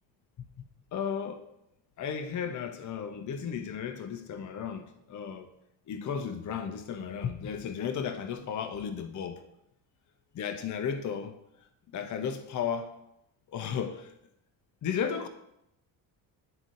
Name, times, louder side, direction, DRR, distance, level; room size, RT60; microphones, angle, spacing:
voice 1, 0.9-1.4 2.0-5.5 5.9-9.4 10.3-11.4 11.9-13.0 13.5-14.1 14.8-15.3, left 7 dB, 40° left, 0.6 m, -34 dB
11.0 x 3.7 x 2.6 m
supercardioid pair, 70°, 47 cm